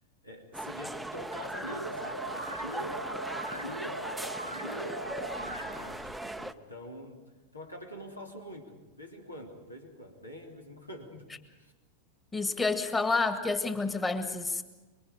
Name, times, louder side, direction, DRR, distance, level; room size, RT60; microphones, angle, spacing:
voice 1, 0.2-7.2 7.5-11.3 11.6-11.7, equal, 85° left, 2 dB, 3.1 m, -46 dB
sound 1, 0.5-6.5, right 1 dB, 5° right, 0.7 m, -39 dB
sound 2, 1.6-6.0, right 1 dB, 85° right, 0.7 m, -39 dB
voice 2, 12.3-14.6, left 3 dB, 15° left, 8 dB, 1.9 m, -29 dB
26.0 x 23.0 x 5.1 m, 1.2 s
figure-of-eight pair, 90°, 0 cm